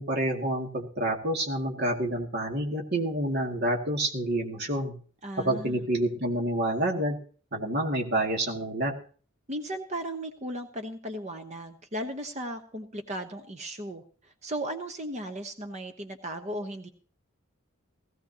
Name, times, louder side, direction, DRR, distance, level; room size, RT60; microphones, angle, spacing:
voice 1, 0.0-4.9 5.4-7.2 7.5-8.9, right 1 dB, 45° right, 2 dB, 2.1 m, -28 dB
voice 2, 5.2-5.8 9.5-14.0 14.4-16.9, right 1 dB, 30° right, 6 dB, 0.9 m, -36 dB
17.5 x 15.5 x 2.8 m, 0.41 s
head